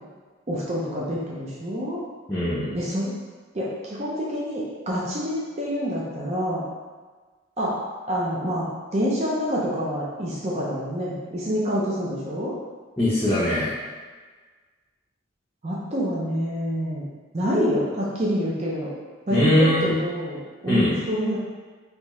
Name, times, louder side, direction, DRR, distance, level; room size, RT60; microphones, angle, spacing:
voice 1, 0.5-2.0 2.7-3.1 3.5-6.6 7.6-7.8 8.1-12.5 15.6-18.9 19.3-21.4, equal, 35° right, -6 dB, 0.5 m, -27 dB
voice 2, 2.3-2.7 13.0-13.7 19.3-20.0 20.7-20.9, left 1 dB, 10° left, -10 dB, 0.6 m, -21 dB
3.5 x 2.7 x 3.0 m, 1.4 s
head